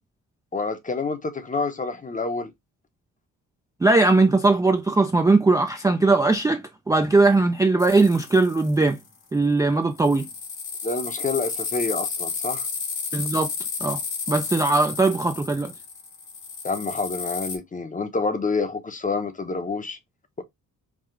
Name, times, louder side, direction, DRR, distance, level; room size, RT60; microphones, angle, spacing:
voice 1, 0.5-2.5 10.8-12.7 16.6-20.0, left 4 dB, 25° left, 0.8 m, -28 dB
voice 2, 3.8-9.0 9.3-10.3 13.1-13.5 13.8-14.0 14.3-15.7, right 3 dB, 10° right, 0.4 m, -19 dB
sound 1, 7.8-9.0 10.0-17.6, left 5 dB, 70° left, 1.7 m, -32 dB
4.8 x 2.4 x 3.7 m
cardioid pair, 100°, 32 cm